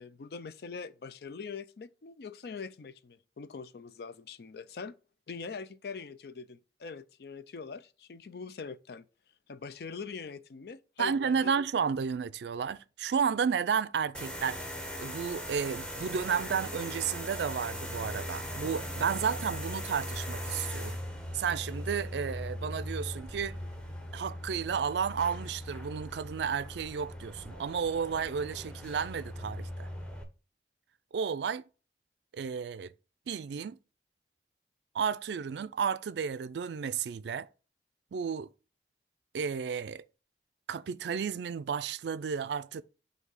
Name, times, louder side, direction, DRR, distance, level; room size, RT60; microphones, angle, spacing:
voice 1, 0.0-5.0 5.3-9.1 9.5-11.6, left 5 dB, 60° left, 0.4 m, -43 dB
voice 2, 11.0-14.6 15.0-21.0 21.3-23.6 24.1-29.9 31.1-31.6 32.3-32.9 33.3-33.8 34.9-37.5 38.1-38.5 39.3-40.0 40.7-42.8, right 6 dB, 75° right, 0.4 m, -32 dB
sound 1, 14.1-30.2, equal, 5° left, 0.8 m, -39 dB
8.1 x 2.8 x 5.5 m
head